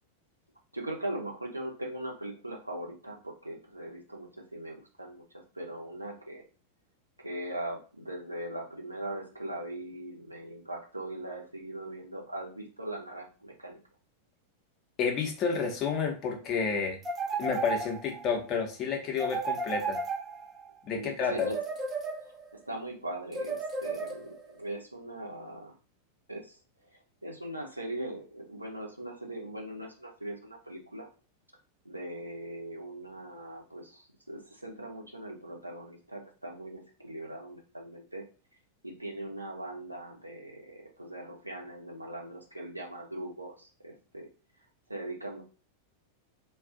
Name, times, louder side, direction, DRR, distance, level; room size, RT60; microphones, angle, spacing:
voice 1, 0.7-5.2 5.5-6.4 7.2-13.8 20.9-21.6 22.6-25.7 26.3-26.6 26.9-31.1 31.8-38.2 38.8-44.3 44.9-45.4, right 1 dB, 85° right, 0 dB, 0.7 m, -40 dB
voice 2, 15.0-17.0 17.4-20.0 20.8-21.5, left 5 dB, 35° left, 3 dB, 0.8 m, -30 dB
sound 1, 17.0-18.3 19.2-20.7 21.4-22.6 23.3-24.5, right 3 dB, 20° right, 0.6 m, -34 dB
2.4 x 2.3 x 3.7 m, 0.36 s
figure-of-eight pair, 90°, 0 cm